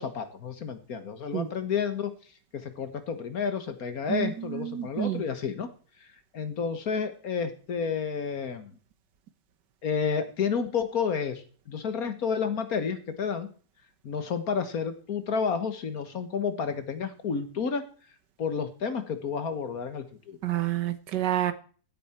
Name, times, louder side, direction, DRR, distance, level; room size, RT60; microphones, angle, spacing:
voice 1, 0.0-2.1 2.5-5.7 6.0-6.1 6.3-8.7 9.8-13.5 14.0-17.9 18.4-20.4, left 6 dB, 60° left, 9 dB, 1.8 m, -30 dB
voice 2, 4.1-5.2 20.4-21.5, right 12 dB, 85° right, 12 dB, 1.7 m, -29 dB
16.0 x 8.6 x 4.4 m, 0.41 s
omnidirectional pair, 1.8 m